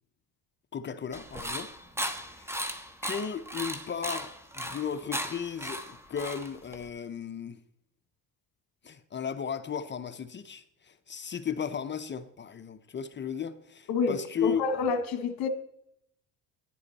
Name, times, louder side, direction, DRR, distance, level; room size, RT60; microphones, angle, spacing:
voice 1, 0.7-1.7 2.3-2.5 3.0-4.3 4.5-7.6 8.8-14.6, left 7 dB, 30° left, 0.6 m, -35 dB
sound 1, 1.1-6.9, equal, 5° right, 1.0 m, -36 dB
voice 2, 13.9-15.5, left 5 dB, 65° left, 1.3 m, -28 dB
10.5 x 8.5 x 4.1 m
cardioid pair, 105°, 39 cm